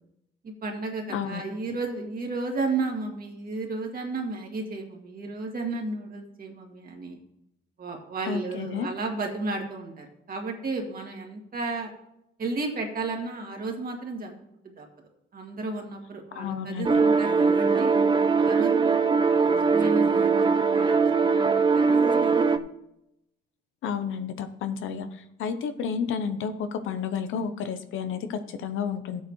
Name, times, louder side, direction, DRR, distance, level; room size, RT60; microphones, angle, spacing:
voice 1, 0.4-7.2 7.8-11.9 12.4-14.4 14.6-14.9 15.3-18.0 18.4-22.6, right 3 dB, 45° right, 1 dB, 2.1 m, -33 dB
voice 2, 1.1-1.4 8.3-8.9 16.3-17.0 23.8-29.2, left 6 dB, 80° left, 9 dB, 0.9 m, -31 dB
sound 1, 16.8-22.6, right 5 dB, 25° right, 0.6 m, -21 dB
13.5 x 8.2 x 3.2 m, 0.82 s
cardioid pair, 90°, 20 cm